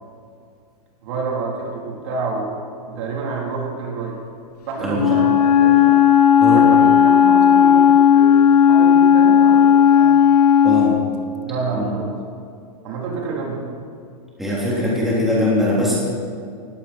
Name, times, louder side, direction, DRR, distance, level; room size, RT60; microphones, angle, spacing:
voice 1, 1.0-2.5 2.9-4.2 4.7-6.0 6.5-10.1 11.4-12.1 12.8-13.6, right 4 dB, 50° right, -1 dB, 4.0 m, -28 dB
voice 2, 4.8-5.1 6.4-6.6 10.6-11.0 11.7-11.9 14.4-16.0, left 1 dB, ahead, -7 dB, 3.2 m, -21 dB
Wind instrument woodwind instrument, 4.9-11.0, left 8 dB, 75° left, 1.4 m, -13 dB
19.0 x 16.0 x 4.5 m, 2.4 s
hypercardioid pair, 160°, 20 cm